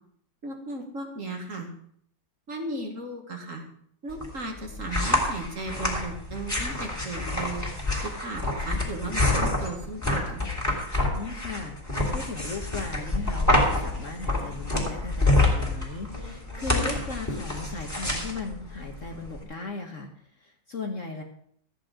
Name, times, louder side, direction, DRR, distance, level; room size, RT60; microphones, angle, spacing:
voice 1, 0.4-1.7 2.5-3.6 4.0-7.6 8.2-10.4, right 2 dB, 40° right, 3 dB, 1.9 m, -36 dB
sound 1, 4.1-19.4, left 2 dB, 10° left, 3.0 m, -27 dB
voice 2, 11.1-21.2, left 3 dB, 45° left, 3 dB, 1.3 m, -37 dB
14.0 x 9.1 x 5.0 m, 0.66 s
omnidirectional pair, 2.2 m